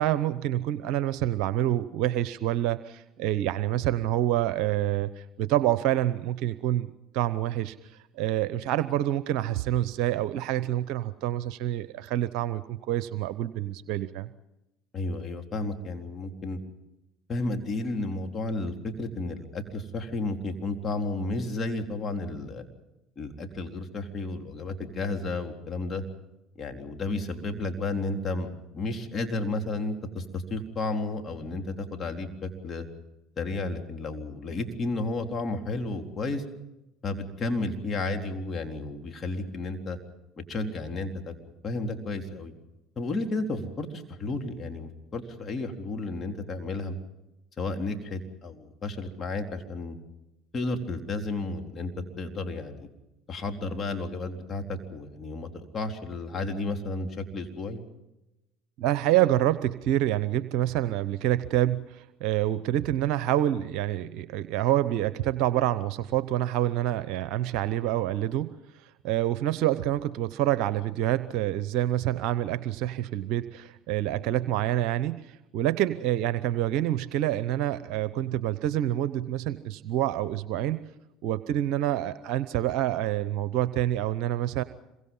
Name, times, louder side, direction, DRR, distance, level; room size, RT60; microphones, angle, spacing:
voice 1, 0.0-14.3 58.8-80.8 81.2-84.6, right 13 dB, 65° right, 14 dB, 0.8 m, -27 dB
voice 2, 14.9-16.6 17.3-22.6 23.2-26.0 26.6-28.5 28.7-32.9 33.4-36.4 37.0-40.0 40.5-41.3 41.6-42.5 43.0-47.0 47.6-50.0 50.5-51.9 52.2-52.9 53.3-57.8, left 2 dB, 35° left, 4 dB, 3.7 m, -32 dB
27.0 x 23.5 x 5.6 m, 0.95 s
hypercardioid pair, 70°, 0 cm